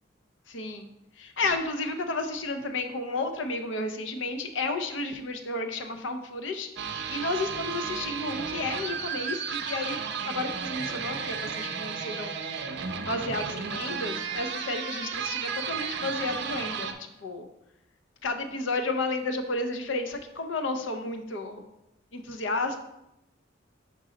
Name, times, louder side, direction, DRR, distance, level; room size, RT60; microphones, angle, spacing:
voice 1, 0.5-10.0 10.2-12.3 13.1-16.9 17.2-17.5 18.2-21.6 22.1-22.8, left 2 dB, 75° left, 6 dB, 0.7 m, -32 dB
sound 1, 6.8-16.9, right 6 dB, 65° right, 0.5 m, -33 dB
5.4 x 3.8 x 5.0 m, 0.88 s
head